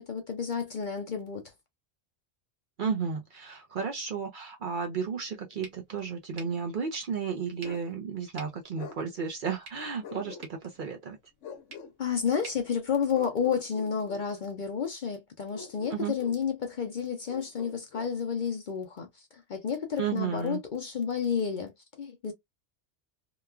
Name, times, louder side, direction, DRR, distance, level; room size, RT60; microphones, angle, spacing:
voice 1, 0.0-1.4 12.0-21.7 22.0-22.3, left 7 dB, 50° left, 0.6 m, -31 dB
voice 2, 2.8-11.2 15.9-16.1 20.0-20.6, right 6 dB, 55° right, 0.6 m, -33 dB
sound 1, 5.6-13.7, right 3 dB, 90° right, 1.4 m, -53 dB
Bark, 7.6-7.9 8.8-9.0 10.0-10.8 11.4-11.9 13.1-14.3 15.5-16.4 17.3-18.1, left 6 dB, 85° left, 1.0 m, -44 dB
3.0 x 2.2 x 2.3 m
omnidirectional pair, 1.2 m